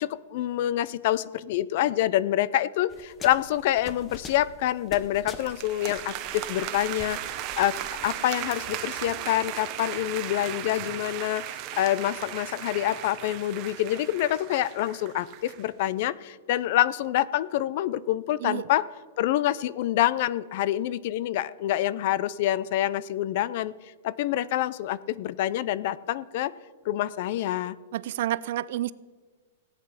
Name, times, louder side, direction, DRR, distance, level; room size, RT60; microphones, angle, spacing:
voice 1, 0.0-7.8 8.0-18.8 19.2-23.7 24.0-26.5 26.9-27.8, left 13 dB, 40° left, 20 dB, 0.4 m, -27 dB
sound 1, 2.9-8.1, left 4 dB, 15° left, 0.8 m, -45 dB
sound 2, 5.3-15.7, right 12 dB, 25° right, 0.9 m, -36 dB
voice 2, 27.9-28.9, right 13 dB, 50° right, 19 dB, 0.4 m, -29 dB
17.5 x 8.9 x 5.7 m, 1.4 s
supercardioid pair, 175°, 0 cm